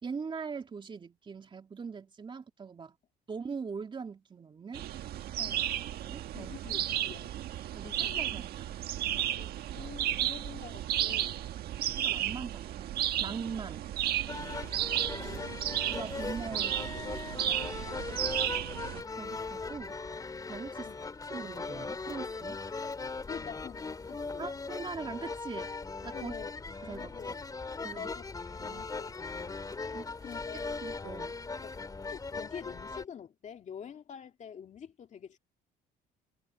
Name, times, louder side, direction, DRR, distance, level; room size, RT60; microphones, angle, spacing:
voice 1, 0.0-3.0 3.3-4.8 6.0-6.6 7.7-8.8 12.0-13.8 14.3-14.6 15.9-16.9 17.4-17.6 18.9-20.0 20.5-20.9 21.3-22.6 24.4-25.7 26.0-26.3 26.8-27.1 27.8-28.1 28.6-28.8 29.9-30.1 30.8-31.4, right 5 dB, 30° right, 2.8 m, -41 dB
sound 1, 4.7-19.0, right 12 dB, 70° right, 1.6 m, -33 dB
voice 2, 5.4-5.7 6.1-7.3 7.8-8.2 9.4-11.5 14.5-14.6 15.1-15.8 17.4-18.6 20.8-21.0 23.3-24.5 26.1-26.5 26.8-27.3 27.7-29.6 30.2-30.8 31.6-31.7 32.1-35.4, left 8 dB, 45° left, 2.3 m, -47 dB
sound 2, 14.3-33.0, left 4 dB, 20° left, 2.4 m, -39 dB
cardioid pair, 110°, 17 cm